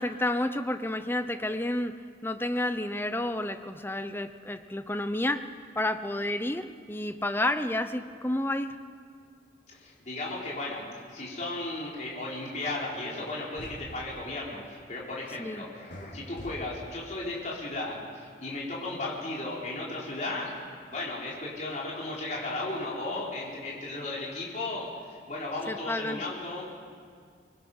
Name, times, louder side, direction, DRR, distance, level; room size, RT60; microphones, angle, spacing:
voice 1, 0.0-1.9 2.2-5.5 5.8-8.8 15.4-15.6 25.7-26.2, left 1 dB, 10° left, 9 dB, 0.7 m, -30 dB
voice 2, 9.7-10.8 11.1-20.5 20.9-26.6, left 2 dB, 40° left, -5 dB, 4.1 m, -35 dB
sound 1, 13.1-13.3 13.6-13.8 15.9-16.1 16.4-16.5, left 1 dB, 85° left, 5.3 m, -42 dB
24.5 x 20.5 x 5.6 m, 2.1 s
head